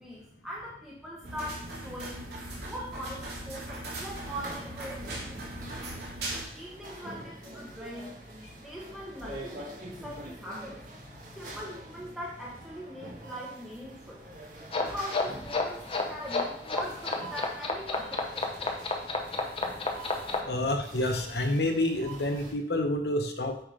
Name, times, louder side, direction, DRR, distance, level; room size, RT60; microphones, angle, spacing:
voice 1, 0.0-2.2 2.6-6.0 6.5-8.1 8.6-9.7 10.0-10.8 11.3-14.2 14.7-18.8, equal, 5° right, -4 dB, 1.2 m, -41 dB
sound 1, 1.2-6.4, right 1 dB, 70° right, 2.5 m, -39 dB
sound 2, 4.2-22.5, right 1 dB, 50° right, 1.7 m, -46 dB
sound 3, 14.7-20.4, left 3 dB, 30° left, 0.9 m, -30 dB
voice 2, 20.5-23.6, left 1 dB, 65° left, 6 dB, 0.9 m, -28 dB
8.8 x 3.6 x 5.0 m, 0.68 s
head